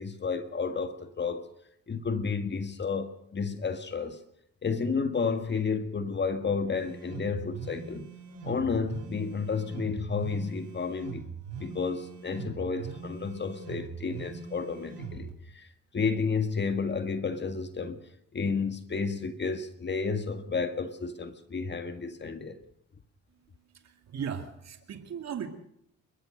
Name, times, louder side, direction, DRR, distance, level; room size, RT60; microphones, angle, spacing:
voice 1, 0.0-1.5 1.9-4.2 4.6-8.1 8.4-11.3 11.6-18.0 18.3-22.6, left 5 dB, 35° left, 1.8 m, -31 dB
sound 1, 6.7-15.3, right 5 dB, 90° right, 6.6 m, -42 dB
voice 2, 23.8-25.5, right 7 dB, 60° right, 2.5 m, -37 dB
29.0 x 14.0 x 6.6 m
cardioid pair, 90°, 30 cm